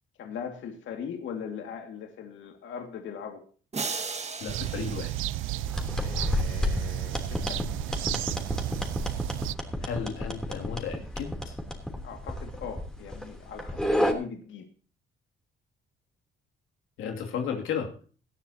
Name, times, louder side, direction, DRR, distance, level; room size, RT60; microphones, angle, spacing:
voice 1, 0.2-3.4 6.0-7.6 12.0-14.7, left 7 dB, 70° left, 4 dB, 2.2 m, -40 dB
sound 1, 3.7-6.1, right 4 dB, 35° right, 1.8 m, -37 dB
voice 2, 4.4-5.2 9.8-11.6 17.0-17.9, left 7 dB, 90° left, 3 dB, 2.6 m, -34 dB
sound 2, 4.5-9.5, right 15 dB, 85° right, 0.5 m, -33 dB
sound 3, 5.6-14.1, left 1 dB, 5° left, 3.2 m, -31 dB
18.5 x 12.0 x 2.9 m, 0.40 s
cardioid pair, 90°, 20 cm